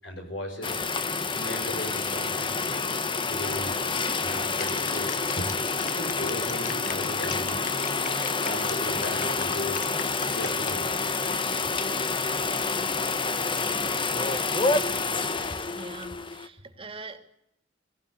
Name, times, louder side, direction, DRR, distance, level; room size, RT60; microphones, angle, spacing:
voice 1, 0.0-0.8 1.3-2.8 3.3-3.7 4.2-5.5 5.8-7.6 8.4-9.8 10.3-11.1, left 1 dB, 75° left, 4 dB, 6.0 m, -37 dB
sound 1, 0.6-16.5, left 4 dB, 25° left, 1.2 m, -28 dB
sound 2, 4.6-10.8 11.2-11.7, left 6 dB, 45° left, 1.4 m, -38 dB
voice 2, 15.6-17.2, right 3 dB, 30° right, 7 dB, 2.8 m, -43 dB
23.0 x 15.0 x 10.0 m, 0.80 s
head